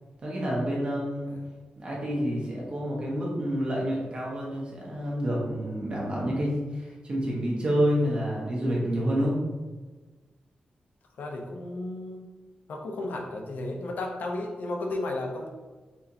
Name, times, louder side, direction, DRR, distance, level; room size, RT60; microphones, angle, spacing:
voice 1, 0.2-1.3 1.8-9.3, equal, 35° right, -5 dB, 1.1 m, -28 dB
voice 2, 11.2-12.2 12.7-15.5, left 2 dB, 80° left, 2 dB, 0.6 m, -33 dB
4.4 x 3.3 x 2.8 m, 1.3 s
wide cardioid pair, 180°, 3 cm